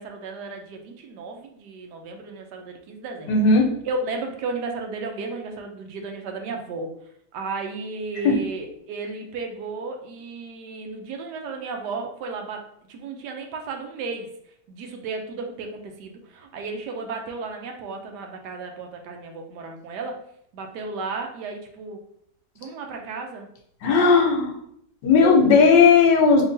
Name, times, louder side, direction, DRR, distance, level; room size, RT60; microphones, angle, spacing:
voice 1, 0.0-3.6 3.8-6.9 7.3-12.6 12.9-14.3 14.7-20.2 20.5-22.0 22.6-23.5, right 3 dB, 75° right, 3 dB, 1.2 m, -34 dB
voice 2, 3.3-3.7 8.2-8.4 23.8-24.5 25.0-26.4, left 4 dB, 85° left, 1 dB, 1.4 m, -16 dB
4.6 x 2.9 x 2.6 m, 0.72 s
omnidirectional pair, 1.8 m